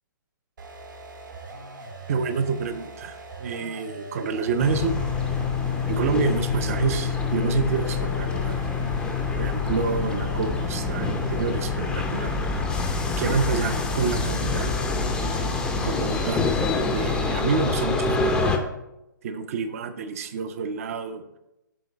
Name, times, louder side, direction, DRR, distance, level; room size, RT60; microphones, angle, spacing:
sound 1, 0.6-16.1, right 2 dB, 65° right, 1.4 m, -41 dB
voice 1, 2.1-5.4 5.9-8.6 9.3-12.4 13.2-14.7 15.3-15.5 15.8-16.5 16.9-18.4 19.2-21.2, right 5 dB, 40° right, 10 dB, 0.6 m, -28 dB
sound 2, 4.6-18.6, left 4 dB, 5° left, 0.5 m, -26 dB
7.7 x 3.8 x 5.1 m, 0.91 s
figure-of-eight pair, 130°, 11 cm